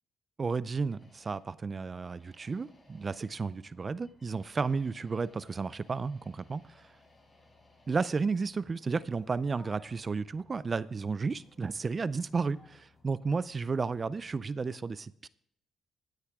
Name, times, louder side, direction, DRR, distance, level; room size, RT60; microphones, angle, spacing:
voice 1, 0.4-6.9 7.9-15.3, right 4 dB, 35° right, 18 dB, 0.4 m, -33 dB
sound 1, 0.9-14.5, left 2 dB, 20° left, 4.0 m, -62 dB
15.5 x 9.5 x 3.6 m, 0.72 s
cardioid pair, 90°, 0 cm